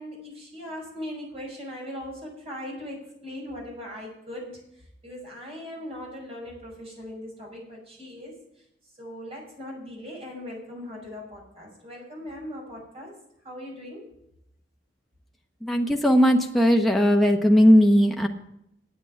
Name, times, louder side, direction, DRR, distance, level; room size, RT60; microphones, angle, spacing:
voice 1, 0.0-4.6 5.0-8.3 9.0-13.1 13.4-14.0, left 1 dB, 35° right, -2 dB, 5.8 m, -39 dB
voice 2, 15.6-18.3, equal, ahead, 1 dB, 1.0 m, -18 dB
8.9 x 8.8 x 9.6 m, 0.77 s
head